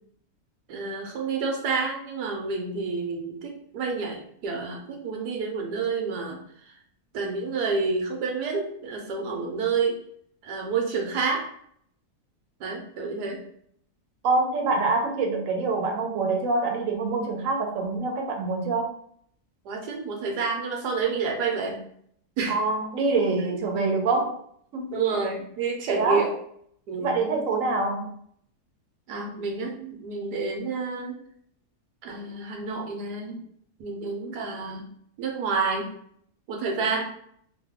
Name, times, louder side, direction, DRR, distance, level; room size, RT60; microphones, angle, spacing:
voice 1, 0.7-6.4 7.1-10.0 10.4-11.5 12.6-13.4 19.6-21.8 22.4-22.6 24.9-26.3 26.9-27.2 29.1-31.2 32.0-33.4 33.8-34.9 35.2-35.9 36.5-37.1, right 4 dB, 90° right, 1 dB, 1.3 m, -29 dB
voice 2, 14.2-18.9 22.5-24.4 24.7-25.2 25.9-26.3 27.0-28.1, right 3 dB, 65° right, 1 dB, 1.0 m, -25 dB
3.1 x 2.2 x 3.4 m, 0.65 s
omnidirectional pair, 1.7 m